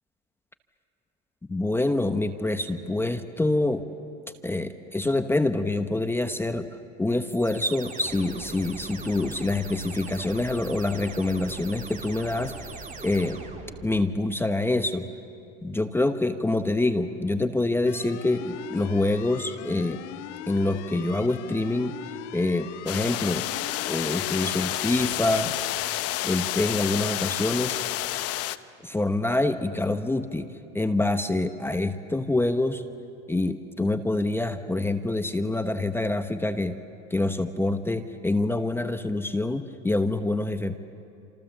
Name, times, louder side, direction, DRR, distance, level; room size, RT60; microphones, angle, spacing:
voice 1, 1.5-3.8 4.4-6.7 7.0-12.6 13.0-13.4 13.8-15.1 15.6-20.0 20.5-21.9 22.3-23.5 23.8-25.6 26.2-27.8 28.8-30.5 30.7-32.8 33.3-36.8 37.1-40.8, left 2 dB, 5° left, 9 dB, 0.9 m, -26 dB
sound 1, 7.3-14.1, right 4 dB, 20° right, 2.9 m, -40 dB
sound 2, 17.9-24.6, left 14 dB, 70° left, 1.5 m, -40 dB
sound 3, 22.9-28.6, left 15 dB, 40° left, 0.9 m, -29 dB
28.0 x 27.5 x 7.3 m, 2.7 s
hypercardioid pair, 115°, 37 cm